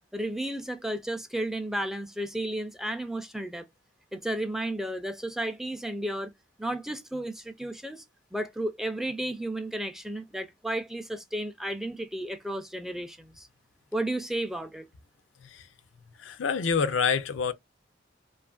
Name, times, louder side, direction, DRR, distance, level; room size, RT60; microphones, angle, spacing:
voice 1, 0.1-3.7 4.1-6.3 6.6-8.0 8.3-13.5 13.9-14.9, right 1 dB, ahead, 0.3 m, -33 dB
voice 2, 16.2-17.5, left 6 dB, 75° left, 0.5 m, -26 dB
2.7 x 2.4 x 2.2 m
head